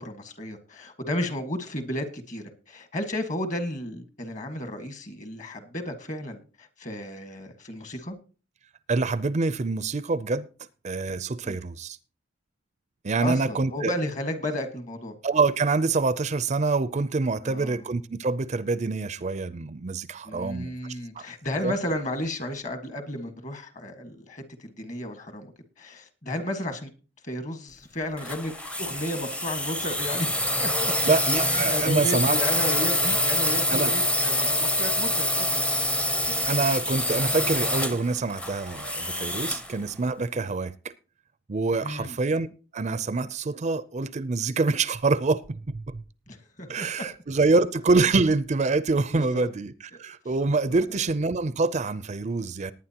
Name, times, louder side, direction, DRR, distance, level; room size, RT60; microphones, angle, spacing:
voice 1, 0.0-8.2 11.4-11.6 13.2-15.1 17.4-17.8 20.2-26.9 27.2-28.5 28.8-30.3 30.6-31.1 31.5-35.6 39.4-39.6 40.3-40.5 41.8-42.2 46.3-47.1 49.1-49.5 50.9-51.0, left 1 dB, 40° left, 1.6 m, -33 dB
voice 2, 8.9-10.5 10.8-12.0 13.0-13.9 15.2-20.7 21.2-21.3 21.6-21.7 31.1-32.4 33.7-33.9 36.5-40.9 41.5-42.5 42.7-46.0 46.7-49.7 50.0-52.7, right 3 dB, 40° right, 0.5 m, -26 dB
sound 1, 28.2-39.7, left 1 dB, 5° left, 0.6 m, -26 dB
19.0 x 9.5 x 2.9 m
head